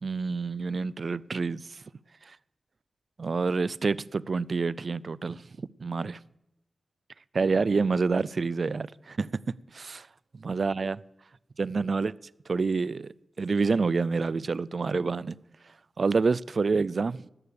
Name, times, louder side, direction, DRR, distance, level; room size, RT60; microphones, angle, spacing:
voice 1, 0.0-1.8 3.2-6.2 7.3-9.3 9.7-10.1 10.3-11.0 11.6-12.1 12.5-15.3 16.0-17.2, right 4 dB, 65° right, 0.4 m, -28 dB
18.0 x 6.9 x 6.7 m
cardioid pair, 45°, 0 cm